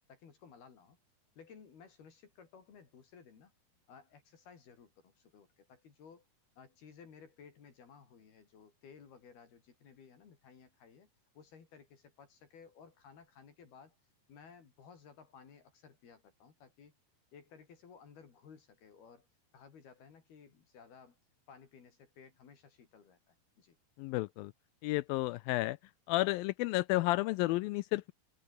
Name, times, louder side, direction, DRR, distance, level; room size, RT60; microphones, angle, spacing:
voice 1, 0.1-1.0 1.4-3.5 3.9-6.3 6.6-11.1 11.4-14.0 14.3-16.9 17.3-19.3 19.5-21.2 21.5-23.8, left 6 dB, 70° left, 5.8 m, -57 dB
voice 2, 24.0-24.5 24.8-25.8 26.1-28.1, left 19 dB, 85° left, 2.1 m, -31 dB
omnidirectional pair, 4.7 m